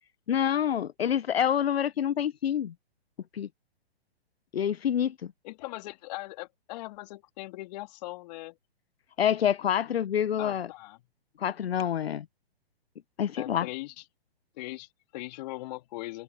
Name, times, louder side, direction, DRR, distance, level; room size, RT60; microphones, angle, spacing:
voice 1, 0.3-2.7 3.3-3.5 4.5-5.1 9.2-10.7 11.4-12.2 13.2-13.7, left 9 dB, 70° left, 0.9 m, -27 dB
voice 2, 5.4-8.6 10.4-11.0 13.4-14.0 14.6-16.2, left 19 dB, 40° left, 3.3 m, -40 dB
hypercardioid pair, 130°, 31 cm